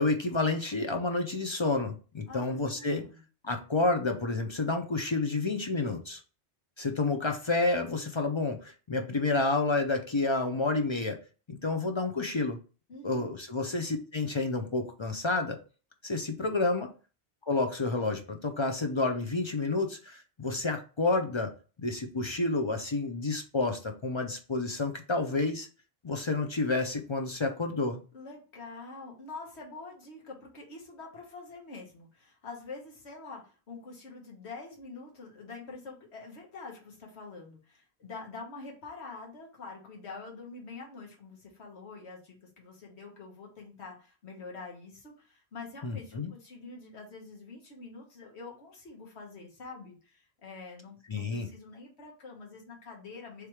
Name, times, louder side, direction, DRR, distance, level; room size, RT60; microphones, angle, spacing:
voice 1, 0.0-3.1 3.4-6.2 6.8-11.2 11.5-12.6 13.0-15.6 16.0-16.9 17.5-21.5 21.8-25.7 26.0-28.0 45.8-46.3 51.1-51.5, left 3 dB, 40° left, 5 dB, 0.4 m, -29 dB
voice 2, 2.3-3.2 12.9-13.4 28.1-53.5, left 3 dB, 85° left, -1 dB, 1.5 m, -46 dB
3.3 x 3.0 x 4.7 m, 0.35 s
omnidirectional pair, 1.1 m